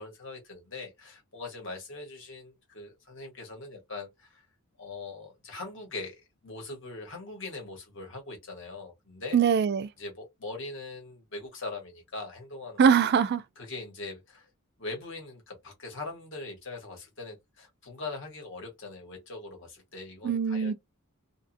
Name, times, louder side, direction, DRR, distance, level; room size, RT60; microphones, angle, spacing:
voice 1, 0.0-4.4 4.8-9.4 10.0-12.8 13.6-14.5 14.8-20.7, left 3 dB, 55° left, 1.4 m, -41 dB
voice 2, 9.3-9.9 12.8-13.4 20.2-20.7, right 7 dB, 45° right, 0.3 m, -22 dB
2.7 x 2.5 x 2.6 m
head